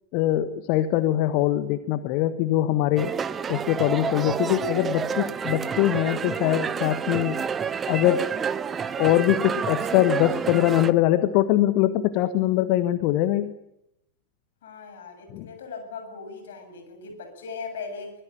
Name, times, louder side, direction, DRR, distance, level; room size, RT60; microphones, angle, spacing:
voice 1, 0.1-3.1 3.5-7.4 7.9-8.3 9.0-13.5 15.3-15.5, left 14 dB, 45° left, 12 dB, 1.4 m, -22 dB
sound 1, 3.0-10.9, right 6 dB, 20° right, 1.0 m, -29 dB
voice 2, 14.6-18.1, left 5 dB, 60° left, 6 dB, 7.9 m, -38 dB
24.5 x 20.5 x 8.9 m, 0.84 s
figure-of-eight pair, 90°, 0 cm